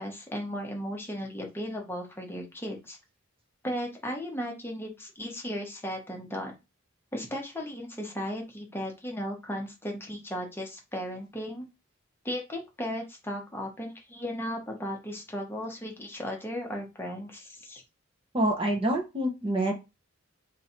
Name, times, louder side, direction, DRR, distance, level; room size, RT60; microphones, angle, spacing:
voice 1, 0.0-3.0 3.6-6.5 7.1-11.7 12.2-17.8, equal, 10° left, 0 dB, 1.0 m, -36 dB
voice 2, 18.3-19.7, right 1 dB, 25° right, 1 dB, 0.8 m, -26 dB
3.1 x 2.7 x 4.3 m, 0.25 s
head